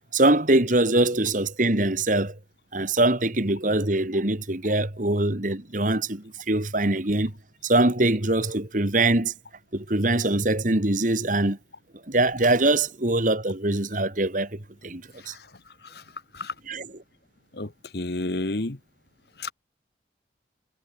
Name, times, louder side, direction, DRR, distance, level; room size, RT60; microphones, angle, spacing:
voice 1, 0.1-2.3 2.7-7.3 7.6-9.3 9.7-11.6 12.1-15.3 16.7-16.9, right 2 dB, 45° right, 2.1 m, -23 dB
voice 2, 17.5-18.8 19.4-19.5, left 2 dB, 60° left, 1.4 m, -31 dB
head